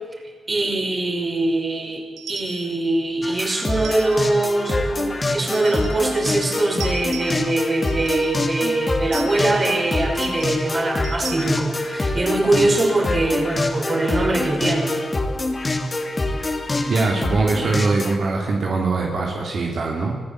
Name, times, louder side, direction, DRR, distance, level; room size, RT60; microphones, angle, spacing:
voice 1, 0.5-15.0, right 2 dB, 30° right, 3 dB, 5.6 m, -22 dB
sound 1, 2.2-2.8 3.7-4.4 5.5-6.1 6.4-7.6 7.8-8.3 9.1-9.7 10.2-10.6 11.0-11.5, right 6 dB, 80° right, 3.2 m, -38 dB
sound 2, 3.2-18.2, left 2 dB, 30° left, 2.5 m, -25 dB
voice 2, 16.8-20.1, right 3 dB, 65° right, -1 dB, 3.5 m, -22 dB
25.0 x 16.0 x 8.3 m, 1.4 s
cardioid pair, 75°, 0 cm